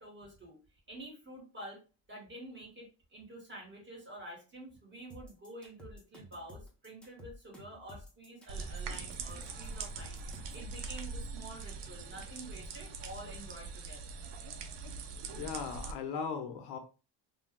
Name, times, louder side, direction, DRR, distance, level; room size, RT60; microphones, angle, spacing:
voice 1, 0.0-1.8 2.1-14.2, right 1 dB, 25° right, -2 dB, 1.4 m, -49 dB
sound 1, 5.1-10.7, left 1 dB, ahead, 0.7 m, -51 dB
sound 2, 8.5-15.9, right 4 dB, 80° right, 0.6 m, -42 dB
voice 2, 15.3-16.8, left 6 dB, 70° left, 6 dB, 0.7 m, -38 dB
2.6 x 2.2 x 3.5 m, 0.33 s
cardioid pair, 150°, 41 cm